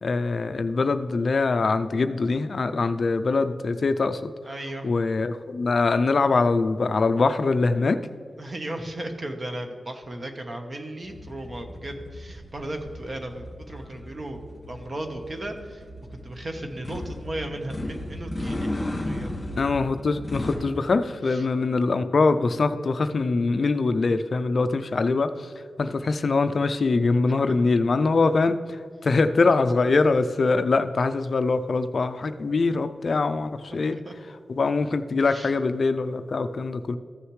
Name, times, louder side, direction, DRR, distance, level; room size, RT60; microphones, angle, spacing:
voice 1, 0.0-4.3 4.8-8.0 19.6-34.0 34.5-37.0, left 3 dB, 55° left, 9 dB, 0.4 m, -23 dB
voice 2, 4.4-4.9 8.4-14.4 14.7-15.8 16.1-18.8 19.0-19.4 21.3-21.4 33.7-34.1 35.3-35.5, right 1 dB, 35° right, 5 dB, 1.0 m, -35 dB
sound 1, 11.0-20.6, left 1 dB, 25° left, 1.9 m, -35 dB
14.5 x 6.5 x 3.2 m, 2.1 s
wide cardioid pair, 105°, 0 cm